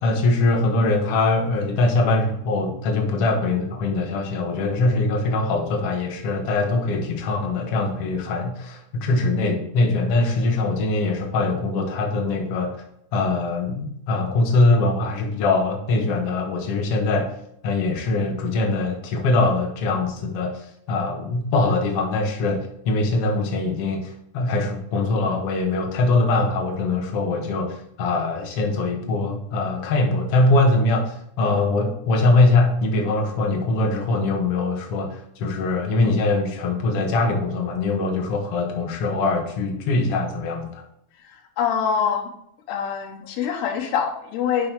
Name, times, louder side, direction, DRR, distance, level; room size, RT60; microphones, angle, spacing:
voice 1, 0.0-12.7 13.1-17.3 17.6-40.8, left 2 dB, 65° left, 2 dB, 1.4 m, -22 dB
voice 2, 41.1-42.3 42.7-44.7, left 7 dB, 90° left, 4 dB, 3.2 m, -25 dB
9.6 x 6.2 x 3.4 m, 0.75 s
omnidirectional pair, 4.5 m